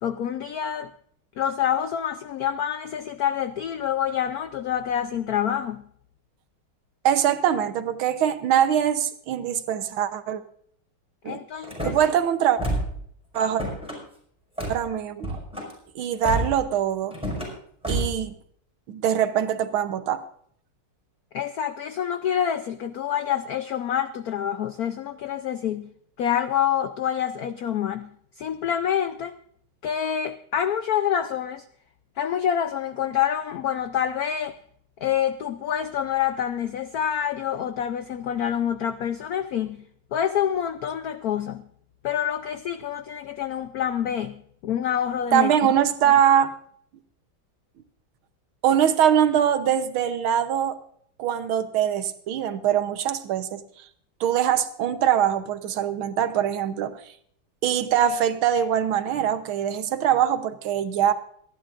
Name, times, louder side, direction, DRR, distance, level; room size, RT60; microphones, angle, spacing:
voice 1, 0.0-0.9 1.4-5.9 11.2-11.9 21.3-25.9 26.2-28.1 28.4-29.4 29.8-31.6 32.2-34.6 35.0-39.8 40.1-41.7 42.0-45.5, left 9 dB, 80° left, 0.8 m, -27 dB
voice 2, 7.0-10.4 11.2-11.4 11.8-12.6 13.3-13.6 14.7-15.4 16.0-17.2 17.9-18.4 18.9-20.2 45.3-46.5 48.6-50.8 51.2-53.6 54.2-57.0 57.6-61.1, right 9 dB, 75° right, 1.7 m, -23 dB
Car / Slam, 11.6-12.1 12.6-13.0 13.3-14.0 14.6-14.8 15.2-15.7 16.2-16.6 17.1-17.5 17.8-18.2, right 1 dB, 5° right, 5.4 m, -29 dB
27.5 x 11.0 x 2.5 m
omnidirectional pair, 2.3 m